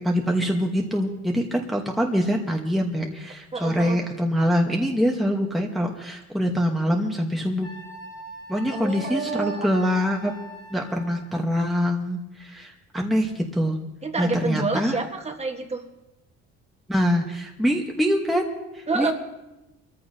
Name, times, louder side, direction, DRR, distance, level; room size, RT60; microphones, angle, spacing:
voice 1, 0.0-7.7 8.5-10.3 10.7-13.8 14.2-14.9 16.9-19.1, equal, ahead, 0 dB, 1.1 m, -24 dB
voice 2, 3.5-4.0 8.7-9.6 14.0-15.8 18.9-19.1, right 4 dB, 20° right, 5 dB, 1.3 m, -28 dB
Wind instrument woodwind instrument, 7.6-11.4, equal, 30° left, 3.5 m, -40 dB
23.5 x 14.0 x 2.8 m, 1.0 s
cardioid pair, 135°, 30 cm